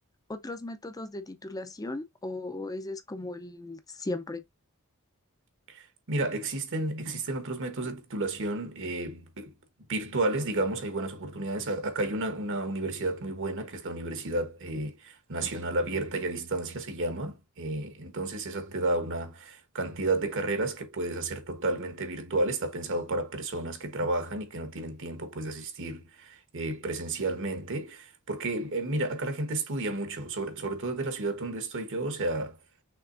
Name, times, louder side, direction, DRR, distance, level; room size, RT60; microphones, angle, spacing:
voice 1, 0.3-4.4, left 2 dB, 15° left, 0.5 m, -37 dB
voice 2, 5.7-9.5 9.9-32.6, right 2 dB, 60° right, 1.1 m, -32 dB
5.9 x 3.4 x 2.5 m
head